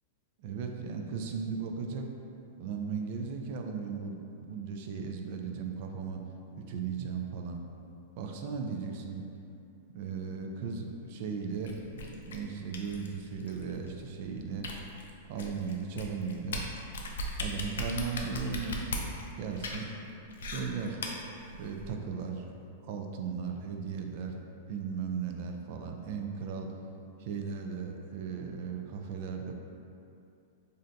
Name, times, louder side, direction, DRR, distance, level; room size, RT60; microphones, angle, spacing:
voice 1, 0.4-2.1 2.6-6.2 6.5-7.6 8.2-9.2 9.9-14.7 15.3-16.7 17.4-19.9 20.4-21.0 21.6-22.5 22.8-24.3 24.7-26.7 27.2-29.5, right 5 dB, 55° right, 3 dB, 0.3 m, -36 dB
sound 1, 11.7-21.9, left 1 dB, 85° left, 0.4 m, -39 dB
2.5 x 2.2 x 3.8 m, 2.7 s
hypercardioid pair, 140°, 0 cm